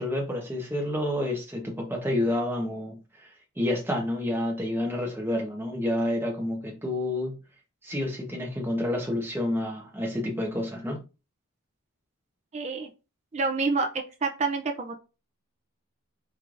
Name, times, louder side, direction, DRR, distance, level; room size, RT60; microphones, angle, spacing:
voice 1, 0.0-3.3 3.6-7.4 7.8-11.0, left 1 dB, 10° right, 1.0 m, -29 dB
voice 2, 12.5-12.9 13.3-13.9 14.2-15.0, right 4 dB, 30° right, 0.4 m, -27 dB
4.6 x 3.4 x 2.5 m
head